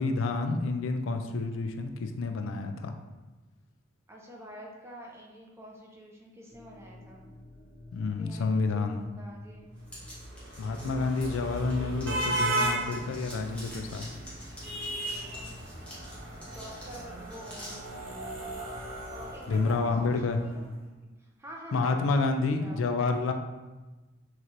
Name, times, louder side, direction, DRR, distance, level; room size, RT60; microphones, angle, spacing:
voice 1, 0.0-2.9 7.9-9.1 10.6-14.1 19.5-20.4 21.7-23.3, left 3 dB, 85° left, 6 dB, 0.4 m, -29 dB
voice 2, 4.1-7.3 8.1-9.7 15.2-15.6 16.4-17.8 19.1-22.8, equal, 15° right, -1 dB, 0.5 m, -47 dB
sound 1, 6.5-20.0, left 1 dB, 35° right, 1.2 m, -51 dB
sound 2, 9.9-11.7 12.0-17.8, equal, 5° left, 1.0 m, -47 dB
sound 3, 10.0-20.3, right 1 dB, 75° right, 1.0 m, -36 dB
4.2 x 3.1 x 2.5 m, 1.2 s
head